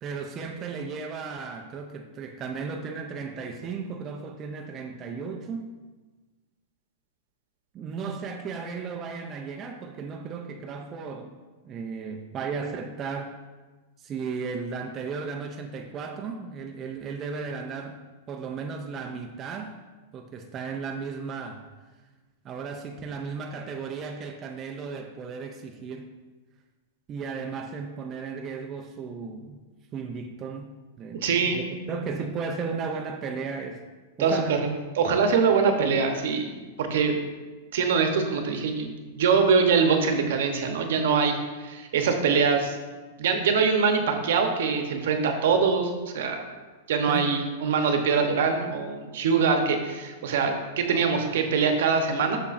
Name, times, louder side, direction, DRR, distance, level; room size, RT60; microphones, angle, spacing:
voice 1, 0.0-5.7 7.7-11.4 11.6-13.4 14.0-18.0 18.3-19.8 20.1-21.7 22.4-26.1 27.1-29.6 29.9-31.6 31.9-33.8 34.2-34.6 47.1-47.3, right 5 dB, 25° right, 3 dB, 0.4 m, -35 dB
voice 2, 31.1-31.6 34.2-37.1 37.7-41.4 41.6-42.8 43.2-46.5 46.9-52.4, right 5 dB, 70° right, 5 dB, 0.8 m, -23 dB
6.8 x 5.9 x 2.5 m, 1.3 s
supercardioid pair, 155°, 0 cm